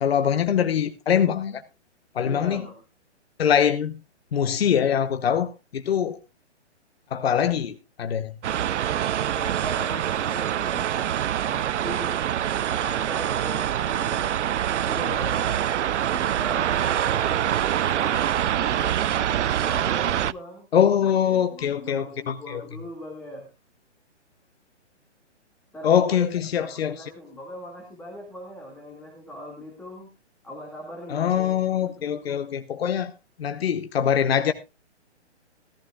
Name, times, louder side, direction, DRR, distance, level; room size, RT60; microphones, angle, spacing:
voice 1, 0.0-1.6 2.1-2.6 3.4-4.0 4.3-6.2 7.1-8.3 20.7-22.6 25.8-27.1 31.1-33.1 33.4-34.5, left 8 dB, 55° left, 10 dB, 1.0 m, -23 dB
voice 2, 2.2-2.8 9.3-11.0 11.4-12.2 12.8-14.4 14.9-15.6 16.1-17.7 17.9-19.0 19.6-20.7 21.0-23.5 25.7-26.3 26.6-30.1 30.4-31.6 31.9-32.5, equal, 5° left, -2 dB, 2.1 m, -40 dB
sound 1, 8.4-20.3, right 10 dB, 75° right, 0.6 m, -25 dB
16.5 x 14.5 x 2.4 m, 0.27 s
hypercardioid pair, 160°, 36 cm